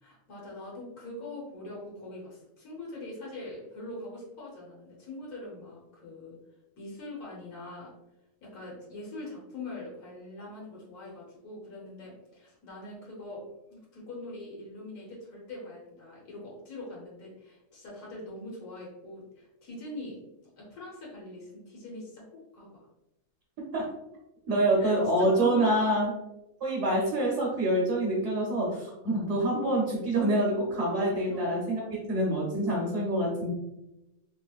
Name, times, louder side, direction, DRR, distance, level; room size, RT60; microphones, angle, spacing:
voice 1, 0.0-6.4 6.8-7.9 8.4-13.4 13.7-20.2 20.6-22.9 24.8-26.0 31.3-31.5, left 2 dB, 90° left, -5 dB, 1.5 m, -43 dB
voice 2, 24.5-26.1 26.6-31.8 32.1-33.5, right 1 dB, 60° right, -4 dB, 1.0 m, -26 dB
3.1 x 2.9 x 2.3 m, 0.93 s
omnidirectional pair, 1.5 m